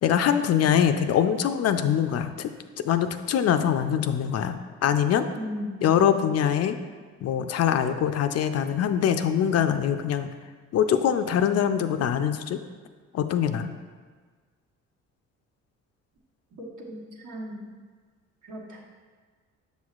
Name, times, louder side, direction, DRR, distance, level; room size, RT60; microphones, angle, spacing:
voice 1, 0.0-2.5 2.8-4.5 4.8-5.3 5.8-6.8 7.2-10.3 10.7-12.6 13.1-13.7, left 9 dB, 55° left, 9 dB, 0.4 m, -23 dB
voice 2, 5.3-5.8 16.6-17.6 18.4-18.8, equal, 75° right, -3 dB, 1.4 m, -36 dB
6.9 x 6.1 x 2.4 m, 1.5 s
cardioid pair, 90°, 30 cm